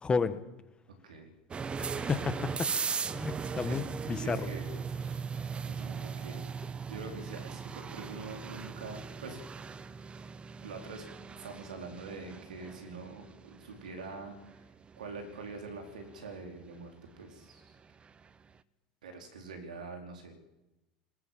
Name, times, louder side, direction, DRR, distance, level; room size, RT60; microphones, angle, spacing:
voice 1, 0.0-0.4 1.9-2.3 3.1-4.4, left 5 dB, 25° left, 12 dB, 1.7 m, -31 dB
sound 1, 1.5-18.3, right 5 dB, 25° right, 1.0 m, -39 dB
voice 2, 4.2-4.7 5.0-5.1 5.7-6.4 6.9-9.4 10.6-14.6 15.0-17.7 19.0-20.3, right 3 dB, 85° right, 4 dB, 4.4 m, -45 dB
20.5 x 18.5 x 7.5 m, 0.97 s
hypercardioid pair, 80°, 4 cm